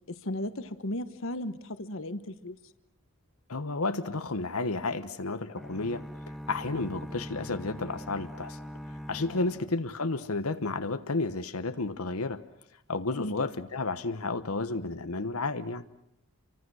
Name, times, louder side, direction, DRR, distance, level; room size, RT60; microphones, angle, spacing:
voice 1, 0.1-2.6 9.3-9.4 13.2-13.3, left 1 dB, 65° left, 11 dB, 1.2 m, -35 dB
voice 2, 3.5-6.0 6.5-8.6 9.1-12.4 12.9-15.8, left 3 dB, 80° left, 9 dB, 1.2 m, -32 dB
sound 1, 5.6-10.5, equal, ahead, 1.0 m, -43 dB
29.5 x 24.5 x 6.4 m, 0.76 s
head